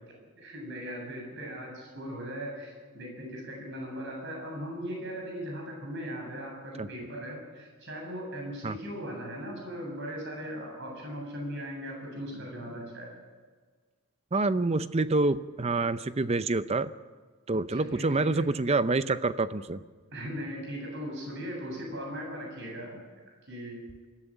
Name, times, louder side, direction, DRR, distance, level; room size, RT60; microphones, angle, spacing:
voice 1, 0.4-13.1 17.7-18.4 20.1-23.0 23.2-23.8, equal, 55° right, 0 dB, 7.8 m, -38 dB
voice 2, 14.3-16.9 17.5-19.8, right 3 dB, 30° right, 14 dB, 0.6 m, -27 dB
22.0 x 14.0 x 9.0 m, 1.5 s
head